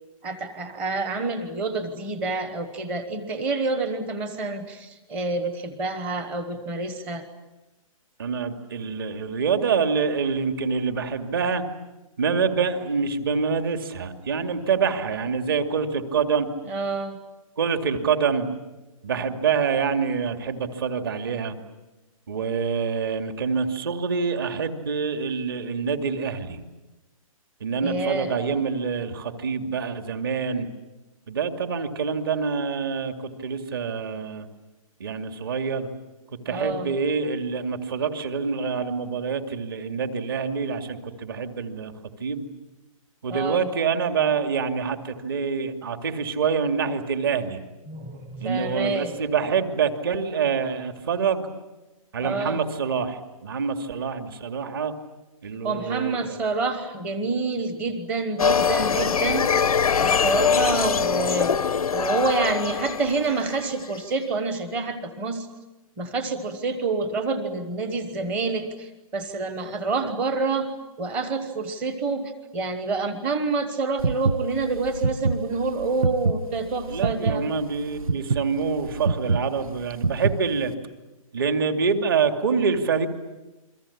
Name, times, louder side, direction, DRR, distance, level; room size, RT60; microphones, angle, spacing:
voice 1, 0.2-7.2 16.7-17.2 27.8-28.4 36.5-37.0 43.3-43.7 47.9-49.1 52.2-52.6 55.6-59.5 60.0-61.6 61.9-65.5 66.0-70.7 71.0-77.4, right 3 dB, 10° right, 10 dB, 1.1 m, -28 dB
voice 2, 8.2-11.6 12.2-16.5 17.6-18.5 19.0-21.5 22.3-26.6 27.6-30.7 31.3-33.1 33.4-34.5 35.0-35.9 36.5-41.9 42.2-42.5 43.2-47.6 48.4-51.5 52.1-54.9 55.4-56.4 76.9-80.7 81.3-83.1, right 5 dB, 40° right, 6 dB, 2.5 m, -26 dB
sound 1, 58.4-64.0, left 6 dB, 90° left, 0.9 m, -23 dB
sound 2, 74.0-80.7, right 4 dB, 75° right, 1.1 m, -26 dB
28.5 x 23.5 x 8.6 m, 1.1 s
hypercardioid pair, 175°, 18 cm